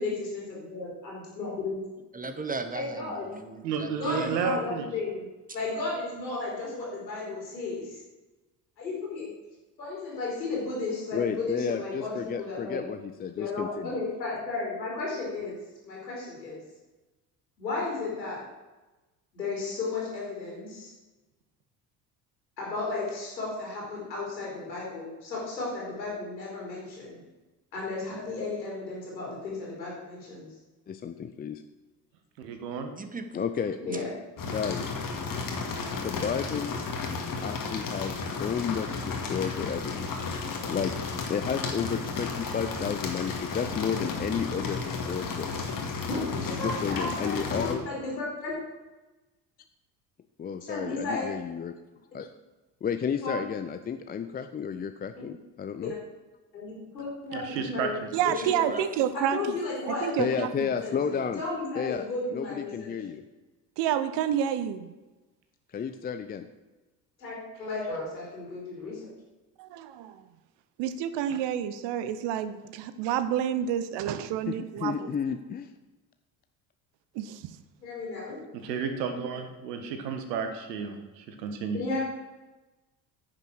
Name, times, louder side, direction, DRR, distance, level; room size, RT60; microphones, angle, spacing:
voice 1, 0.0-1.8 2.7-3.3 4.0-5.3 5.5-8.0 8.8-9.3 9.8-12.8 13.3-15.5 15.8-16.6 17.6-18.4 19.3-20.9 22.6-27.2 27.7-30.5 33.8-34.1 46.1-48.5 50.7-51.3 53.2-53.3 55.1-55.2 55.8-56.0 56.5-57.9 58.2-58.7 59.1-60.3 60.8-62.9 67.2-69.0 77.8-78.4 81.7-82.0, left 3 dB, 85° left, -4 dB, 3.9 m, -34 dB
voice 2, 2.1-4.6 33.0-33.5 35.7-36.2 58.2-58.8, right 3 dB, 15° right, 9 dB, 1.1 m, -38 dB
voice 3, 3.6-4.9 32.4-32.9 57.3-57.9 78.6-81.8, right 6 dB, 75° right, 6 dB, 1.5 m, -32 dB
voice 4, 11.1-14.0 30.9-31.6 33.3-33.8 34.5-34.9 36.0-36.8 37.4-40.2 40.7-40.9 41.3-45.5 46.6-47.8 50.4-51.7 52.1-52.3 52.8-55.9 60.2-61.4 61.7-62.1 62.3-63.2 65.7-66.5 74.5-75.7, left 7 dB, 20° left, 9 dB, 0.5 m, -32 dB
sound 1, 34.4-47.7, left 4 dB, 40° left, 2.1 m, -33 dB
voice 5, 58.1-59.6 59.9-60.5 63.8-64.9 69.6-70.3 70.8-75.1 77.1-77.5, right 10 dB, 55° right, 12 dB, 0.9 m, -29 dB
10.0 x 6.8 x 6.2 m, 1.1 s
figure-of-eight pair, 60°, 50 cm